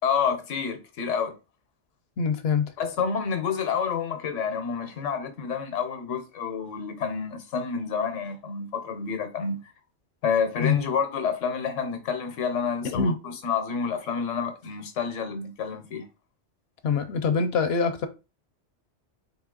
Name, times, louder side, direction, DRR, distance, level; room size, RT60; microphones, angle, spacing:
voice 1, 0.0-1.4 2.8-9.6 10.2-16.1, left 6 dB, 90° left, 1.2 m, -29 dB
voice 2, 2.2-2.7 10.6-10.8 12.8-13.2 16.8-18.1, left 5 dB, 65° left, 0.7 m, -24 dB
4.1 x 2.9 x 3.7 m
omnidirectional pair, 1.2 m